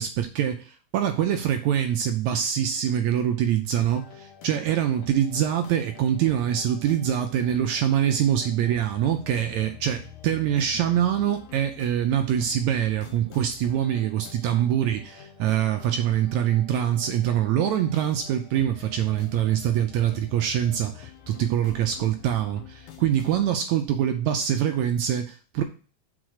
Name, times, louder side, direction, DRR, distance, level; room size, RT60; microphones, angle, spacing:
voice 1, 0.0-25.6, right 10 dB, 75° right, 1.7 m, -24 dB
sound 1, 3.8-23.5, left 9 dB, 65° left, 1.8 m, -47 dB
6.1 x 4.3 x 6.4 m
omnidirectional pair, 3.7 m